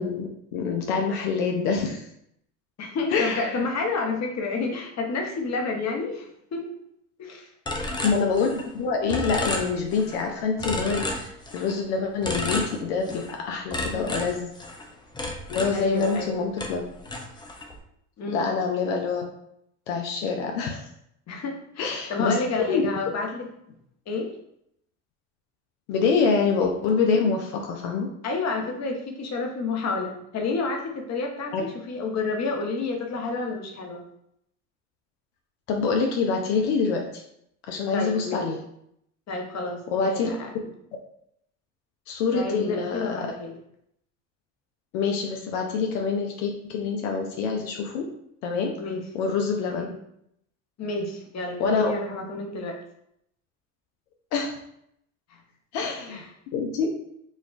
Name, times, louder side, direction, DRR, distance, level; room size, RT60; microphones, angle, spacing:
voice 1, 0.0-2.1 3.1-3.6 8.0-14.5 15.5-16.8 18.3-19.2 19.9-20.9 21.8-22.4 22.7-22.8 25.9-28.1 31.5-31.6 35.7-37.2 37.7-38.6 39.9-40.3 42.1-43.3 44.9-48.1 48.4-48.8 49.1-49.9 51.6-51.9 54.3-54.6 55.7-56.2 56.5-56.9, left 5 dB, 75° left, 2 dB, 0.6 m, -26 dB
voice 2, 2.8-6.7 7.2-7.5 13.9-14.3 15.7-16.4 18.2-18.5 21.3-23.4 24.1-24.3 28.2-34.0 37.9-38.5 39.3-40.5 42.3-43.5 48.8-49.0 49.8-49.9 50.8-52.8 55.3-55.4 56.1-56.2, left 3 dB, 40° left, 2 dB, 0.9 m, -30 dB
sound 1, 7.7-8.8 9.1-10.2 10.6-11.8 12.2-13.4 13.7-16.3 16.6-17.8, left 1 dB, 10° left, 0.4 m, -32 dB
4.2 x 2.3 x 2.4 m, 0.74 s
supercardioid pair, 85°, 43 cm